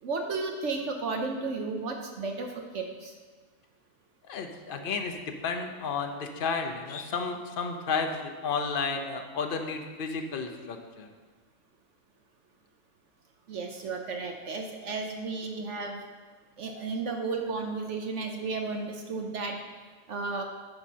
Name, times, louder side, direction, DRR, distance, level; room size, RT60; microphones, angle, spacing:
voice 1, 0.0-3.1 4.8-4.9 13.5-16.0 16.6-19.6 20.1-20.4, right 3 dB, 55° right, 3 dB, 0.9 m, -33 dB
voice 2, 4.3-11.1, left 5 dB, 50° left, 5 dB, 0.6 m, -32 dB
9.8 x 4.3 x 6.1 m, 1.4 s
omnidirectional pair, 1.7 m